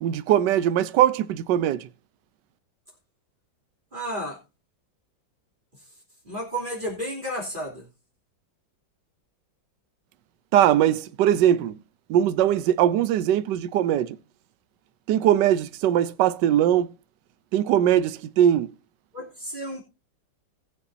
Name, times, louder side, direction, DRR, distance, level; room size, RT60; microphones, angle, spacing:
voice 1, 0.0-1.9 10.5-11.8 12.1-14.2 15.1-16.9 17.5-18.7, right 11 dB, 75° right, 1.3 m, -21 dB
voice 2, 3.9-4.4 5.7-5.9 6.2-7.9 19.1-19.8, equal, 25° right, 3.3 m, -32 dB
19.5 x 7.0 x 2.7 m
omnidirectional pair, 2.0 m